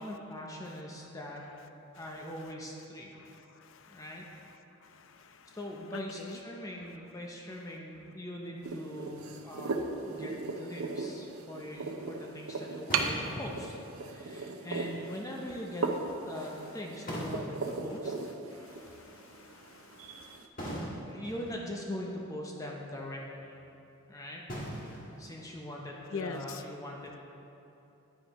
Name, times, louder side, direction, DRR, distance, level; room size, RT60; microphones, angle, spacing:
voice 1, 0.0-1.5 1.9-3.2 3.9-4.2 5.5-9.8 10.1-15.9 16.3-18.1 21.0-23.6 24.1-24.4 25.2-27.2, left 1 dB, 15° left, -1 dB, 0.6 m, -42 dB
voice 2, 3.2-4.0 4.8-5.6 5.9-6.4 18.5-20.4 26.1-26.6, left 5 dB, 65° left, 9 dB, 0.5 m, -44 dB
sound 1, 8.6-20.5, right 3 dB, 75° right, 0.6 m, -38 dB
sound 2, 9.0-9.8 11.7-11.8 12.9-14.0 16.8-16.9 17.1-18.2 20.6-21.8 22.3-22.4 22.8-22.9 24.5-25.8, equal, 40° left, 1.5 m, -41 dB
9.7 x 9.5 x 3.0 m, 2.9 s
head